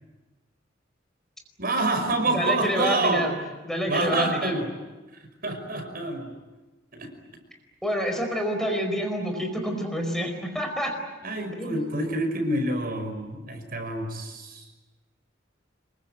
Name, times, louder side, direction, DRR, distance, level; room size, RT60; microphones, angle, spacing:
voice 1, 1.6-3.3 3.9-4.7 5.4-6.3 6.9-7.1 11.2-14.6, right 2 dB, 50° right, 5 dB, 5.6 m, -27 dB
voice 2, 2.3-3.3 3.7-4.5 7.8-11.0 11.6-11.8, equal, 5° left, 3 dB, 4.8 m, -28 dB
26.0 x 23.5 x 9.3 m, 1.2 s
head